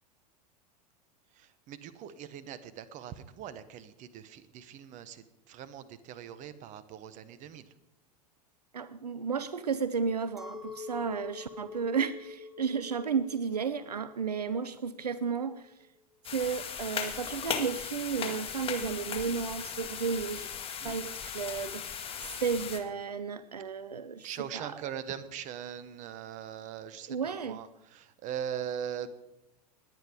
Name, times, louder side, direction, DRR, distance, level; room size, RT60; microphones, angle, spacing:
voice 1, 1.3-7.7 20.8-21.0 24.2-29.1, right 9 dB, 40° right, 15 dB, 1.2 m, -41 dB
voice 2, 8.7-15.6 16.3-22.0 22.4-24.8 27.1-27.6, right 6 dB, 80° right, 15 dB, 0.6 m, -33 dB
Chink clink, 10.4-15.8, left 5 dB, ahead, 1.4 m, -46 dB
sound 1, 16.2-22.8, left 8 dB, 30° left, 1.8 m, -37 dB
20.0 x 9.1 x 5.1 m, 0.92 s
figure-of-eight pair, 85°, 20 cm